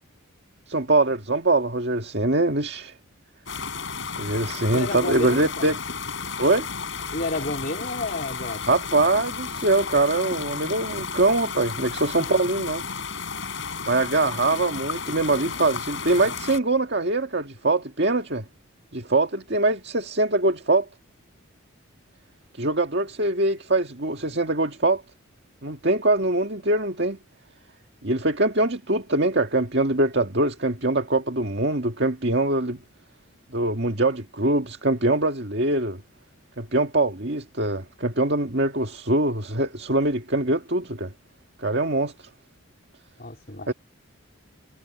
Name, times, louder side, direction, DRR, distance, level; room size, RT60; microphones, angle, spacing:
voice 1, 0.7-2.9 4.2-5.8 6.4-6.7 8.7-12.8 13.9-18.4 18.9-20.9 22.6-25.0 25.6-27.2 28.0-32.8 33.5-36.0 36.6-41.1 41.6-42.1 43.7-43.8, right 2 dB, 50° right, 2.0 m, -23 dB
sound 1, 3.5-16.6, left 5 dB, 60° left, 5.2 m, -33 dB
voice 2, 4.7-5.7 7.1-8.6 12.2-12.4 43.2-43.7, left 2 dB, 45° left, 3.4 m, -31 dB
head